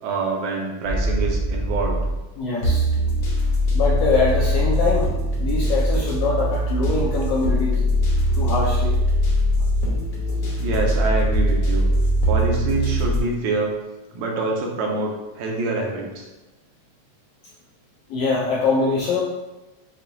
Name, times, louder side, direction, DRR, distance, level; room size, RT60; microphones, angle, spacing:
voice 1, 0.0-2.0 9.6-9.7 10.6-11.9 12.3-13.7 14.1-16.3, right 3 dB, 80° right, 0 dB, 2.0 m, -26 dB
sound 1, 0.8-2.2 2.6-13.2, equal, 65° left, 1.1 m, -21 dB
voice 2, 2.4-2.9 3.7-5.1 5.4-7.9 8.3-9.0 18.1-19.2, left 4 dB, 80° left, -4 dB, 1.4 m, -23 dB
7.1 x 2.7 x 2.6 m, 1.1 s
omnidirectional pair, 3.4 m